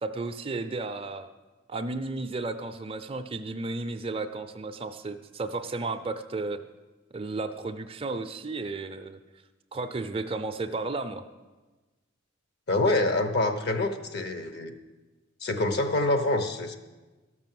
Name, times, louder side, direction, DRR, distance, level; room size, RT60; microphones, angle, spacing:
voice 1, 0.0-1.3 1.7-6.6 7.1-9.2 9.7-11.2, right 3 dB, 30° right, 8 dB, 0.5 m, -33 dB
voice 2, 12.7-14.7 15.4-16.8, left 2 dB, 55° left, 8 dB, 0.9 m, -26 dB
13.0 x 6.1 x 7.6 m, 1.2 s
head